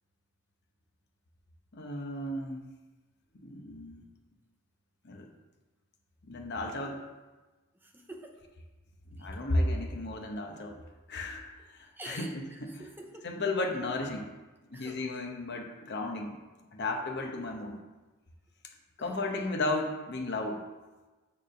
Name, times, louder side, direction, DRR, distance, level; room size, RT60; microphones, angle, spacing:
voice 1, 1.7-2.6 3.4-4.1 5.0-5.3 6.2-7.0 9.1-10.8 11.1-12.8 13.2-14.3 14.7-16.3 16.7-17.8 19.0-20.7, left 2 dB, 55° left, 2 dB, 1.0 m, -34 dB
voice 2, 7.8-8.4 9.2-9.4 12.0-13.3 14.7-15.4 19.0-19.5, right 1 dB, 10° right, 2 dB, 0.7 m, -48 dB
9.0 x 3.6 x 6.5 m, 1.2 s
head